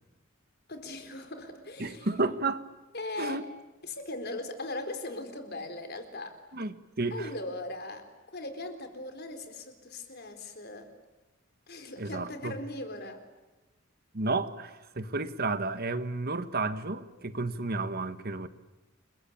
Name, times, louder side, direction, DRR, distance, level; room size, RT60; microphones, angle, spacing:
voice 1, 0.7-2.1 2.9-3.5 3.8-6.4 7.1-10.9 11.7-13.2, left 2 dB, 50° left, 7 dB, 4.3 m, -39 dB
voice 2, 1.8-2.6 3.2-3.4 6.5-7.3 12.0-12.6 14.1-18.5, right 3 dB, 50° right, 10 dB, 1.6 m, -32 dB
29.5 x 23.0 x 8.7 m, 1.1 s
head